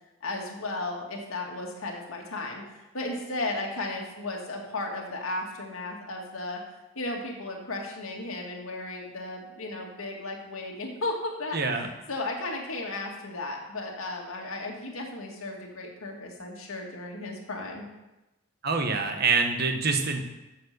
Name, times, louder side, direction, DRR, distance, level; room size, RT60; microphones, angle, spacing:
voice 1, 0.2-2.6 2.9-6.6 7.0-17.8, left 2 dB, 75° left, 0 dB, 2.0 m, -35 dB
voice 2, 11.5-11.9 18.6-20.2, right 4 dB, 45° right, 5 dB, 1.1 m, -25 dB
8.5 x 7.3 x 6.7 m, 1.0 s
head